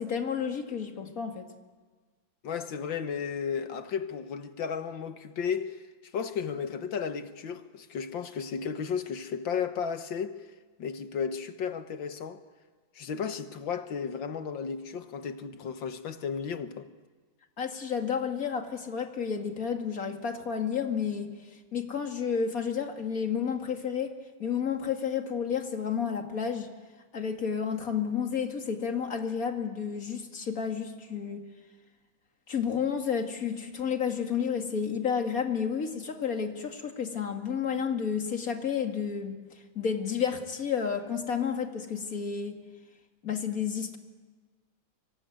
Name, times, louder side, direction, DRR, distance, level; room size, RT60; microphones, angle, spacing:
voice 1, 0.0-1.5 17.6-21.3 21.7-26.7 27.1-31.4 32.5-39.4 39.7-42.6 43.2-44.0, left 7 dB, 45° left, 2.7 m, -31 dB
voice 2, 2.4-5.8 6.1-10.4 10.8-12.4 13.0-16.9, left 6 dB, 70° left, 2.0 m, -34 dB
25.0 x 24.5 x 9.4 m
omnidirectional pair, 2.2 m